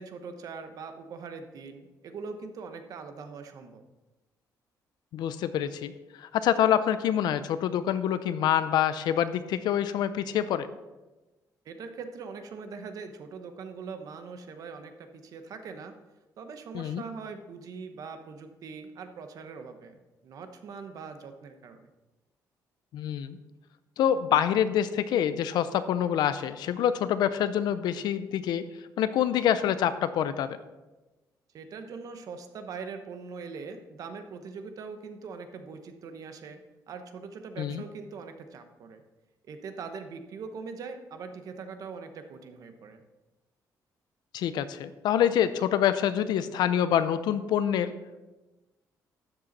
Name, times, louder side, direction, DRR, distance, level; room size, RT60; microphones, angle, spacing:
voice 1, 0.0-3.8 11.6-15.9 16.4-20.0 20.2-21.9 31.5-36.6 36.9-39.0 39.5-43.0, right 5 dB, 55° right, 7 dB, 1.0 m, -42 dB
voice 2, 5.1-5.9 6.2-10.7 16.7-17.0 22.9-23.4 24.0-28.7 29.0-30.5 37.6-37.8 44.3-47.9, left 10 dB, 85° left, 12 dB, 0.6 m, -26 dB
12.5 x 7.9 x 4.1 m, 1.1 s
cardioid pair, 165°, 7 cm